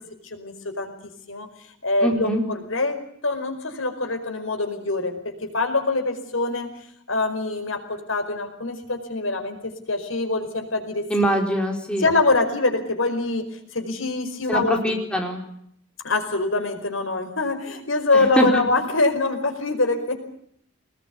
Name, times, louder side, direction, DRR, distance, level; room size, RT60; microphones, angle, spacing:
voice 1, 0.2-0.9 1.3-1.5 1.8-3.0 3.2-6.7 7.1-11.1 12.0-13.4 13.7-14.8 16.0-20.2, left 3 dB, 80° left, 6 dB, 4.9 m, -24 dB
voice 2, 2.0-2.4 11.1-12.0 14.5-15.4 18.1-18.6, equal, 5° left, 1 dB, 4.4 m, -23 dB
24.5 x 20.5 x 8.4 m, 0.70 s
head